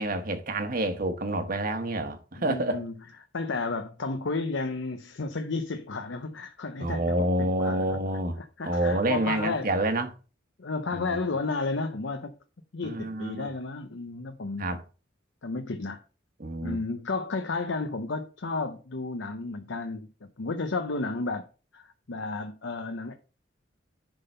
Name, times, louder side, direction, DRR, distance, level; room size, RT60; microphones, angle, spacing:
voice 1, 0.0-2.8 6.8-10.1 10.9-11.0 12.8-13.5 14.6-14.8 16.4-16.8, right 1 dB, 50° right, 1.2 m, -28 dB
voice 2, 2.4-2.9 3.3-7.9 8.6-9.7 10.6-12.3 12.7-14.7 15.4-16.0 16.6-20.1 20.4-21.4 21.7-23.1, left 3 dB, 85° left, 0.8 m, -32 dB
10.5 x 3.8 x 5.5 m
head